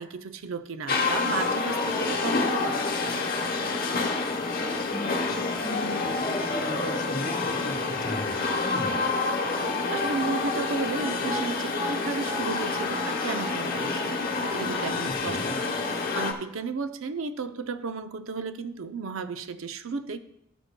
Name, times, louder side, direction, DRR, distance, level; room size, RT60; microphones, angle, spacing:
voice 1, 0.0-3.4 9.9-14.2 14.5-15.8 16.1-20.2, right 4 dB, 80° right, 11 dB, 0.5 m, -34 dB
sound 1, 0.9-16.3, left 3 dB, 45° left, 1.0 m, -28 dB
voice 2, 4.6-9.1 15.2-15.5, left 1 dB, 20° left, 1 dB, 1.2 m, -37 dB
13.0 x 7.8 x 2.2 m, 0.79 s
head